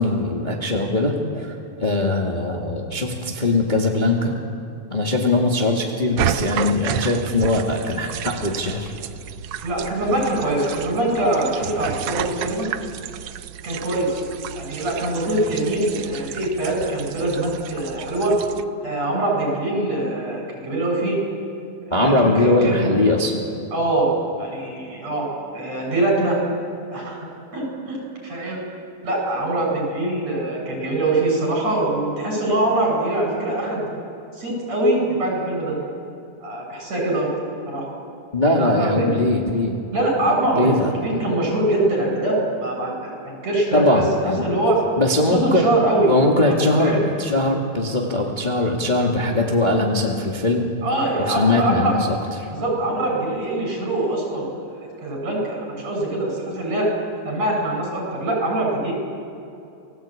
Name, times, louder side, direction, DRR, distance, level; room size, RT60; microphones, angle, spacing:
voice 1, 0.0-1.5 1.8-4.3 4.9-8.9 21.9-23.4 38.3-39.8 40.6-40.9 43.7-44.5 45.0-45.7 46.1-50.7 51.2-52.5, left 2 dB, 20° left, -1 dB, 1.8 m, -21 dB
sound 1, 6.2-18.6, right 10 dB, 85° right, 1.3 m, -31 dB
voice 2, 9.6-12.7 13.6-14.2 14.5-18.4 18.8-21.2 21.9-23.0 23.7-24.1 24.4-25.3 25.5-26.4 26.9-27.2 27.5-28.6 29.0-33.9 34.3-35.8 36.4-37.3 37.7-37.8 38.5-39.1 39.9-44.8 45.3-46.1 46.4-47.0 50.8-51.9 52.5-54.5 54.8-56.9 57.3-58.9, right 1 dB, 60° right, -1 dB, 7.7 m, -23 dB
29.0 x 18.5 x 8.6 m, 2.7 s
omnidirectional pair, 3.5 m